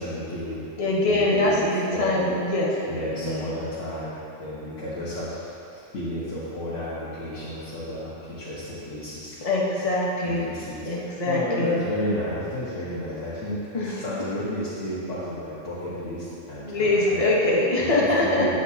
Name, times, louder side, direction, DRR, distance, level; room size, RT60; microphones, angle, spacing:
voice 1, 0.0-0.6 1.0-1.6 1.9-2.2 2.9-9.5 9.8-9.9 10.2-17.2 18.0-18.5, left 1 dB, 75° left, -11 dB, 1.8 m, -32 dB
voice 2, 0.8-2.7 3.1-3.5 9.4-10.6 10.9-11.7 13.7-13.9 16.7-18.5, left 2 dB, 30° left, -5 dB, 1.2 m, -23 dB
13.0 x 8.3 x 2.9 m, 2.8 s
omnidirectional pair, 1.3 m